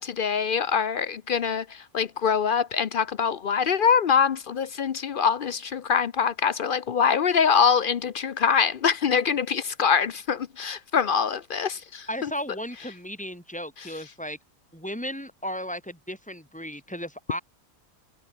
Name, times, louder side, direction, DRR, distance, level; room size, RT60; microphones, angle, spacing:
voice 1, 0.0-1.6 1.9-12.0, left 6 dB, 60° left, 0.5 m, -24 dB
voice 2, 12.1-14.4 14.7-17.4, equal, 5° left, 4.3 m, -35 dB
omnidirectional pair, 1.6 m